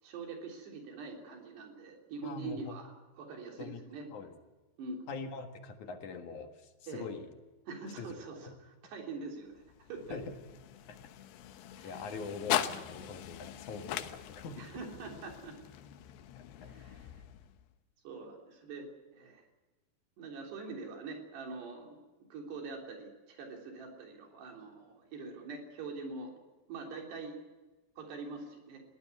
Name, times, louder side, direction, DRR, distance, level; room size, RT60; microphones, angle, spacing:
voice 1, 0.0-4.1 4.8-5.1 6.9-7.1 7.7-10.2 11.8-12.1 14.6-15.6 16.7-17.1 18.0-19.4 20.2-22.0 22.3-26.3 26.7-27.4 28.0-28.8, right 4 dB, 75° right, 2 dB, 5.5 m, -44 dB
voice 2, 2.2-2.8 3.6-3.8 4.1-4.3 5.1-7.3 8.0-8.1 8.4-8.6 10.1-10.3 11.8-14.6 16.3-16.7, left 4 dB, 55° left, 6 dB, 2.7 m, -43 dB
sound 1, 9.5-17.8, left 11 dB, 75° left, 3.0 m, -40 dB
21.5 x 16.5 x 9.6 m, 1.2 s
omnidirectional pair, 4.8 m